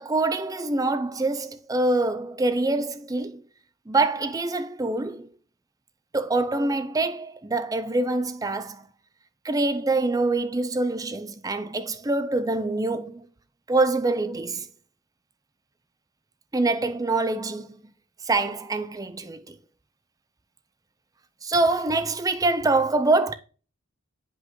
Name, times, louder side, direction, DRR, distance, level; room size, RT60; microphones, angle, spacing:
voice 1, 0.0-3.4 3.9-5.3 6.1-8.8 9.4-13.3 13.7-14.7 16.5-17.7 18.2-19.6 21.4-23.3, right 2 dB, 15° right, 0.4 m, -25 dB
7.8 x 5.4 x 3.1 m
head